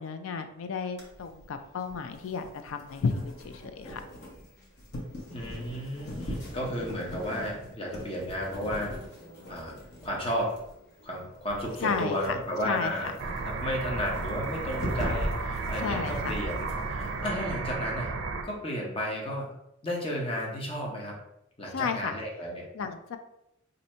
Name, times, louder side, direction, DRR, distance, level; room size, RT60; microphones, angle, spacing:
voice 1, 0.0-4.0 11.8-12.4 12.6-12.9 15.8-16.3 21.7-22.2 22.7-23.2, left 5 dB, 75° left, 8 dB, 0.4 m, -32 dB
sound 1, 1.0-17.3, equal, 55° left, 1.0 m, -40 dB
voice 2, 5.3-9.0 9.5-9.8 10.0-10.5 11.0-13.1 13.4-18.1 18.4-19.5 19.8-21.2 21.6-22.6, equal, 25° left, -2 dB, 0.8 m, -33 dB
sound 2, 13.2-18.4, right 3 dB, 60° right, 0.5 m, -33 dB
2.7 x 2.6 x 4.3 m, 0.82 s
head